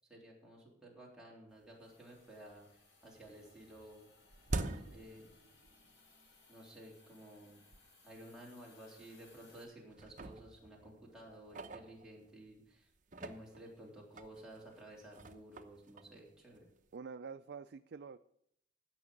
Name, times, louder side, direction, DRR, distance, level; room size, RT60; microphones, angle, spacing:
voice 1, 0.1-2.7 3.0-4.1 4.9-5.3 6.5-7.6 8.0-12.9 13.2-16.7, right 1 dB, 5° right, -4 dB, 3.5 m, -54 dB
sound 1, 1.7-1.8 2.2-2.8 3.0-5.9 6.2-6.4 7.1-7.2 7.7-7.8 8.1-8.3 9.0-9.5 9.9-12.5 13.0-16.9, right 2 dB, 45° right, 0.9 m, -46 dB
Hiss, 1.8-9.6, left 3 dB, 85° left, 4.7 m, -66 dB
voice 2, 16.9-18.2, right 5 dB, 65° right, 10 dB, 0.4 m, -47 dB
16.0 x 6.0 x 6.4 m, 0.72 s
head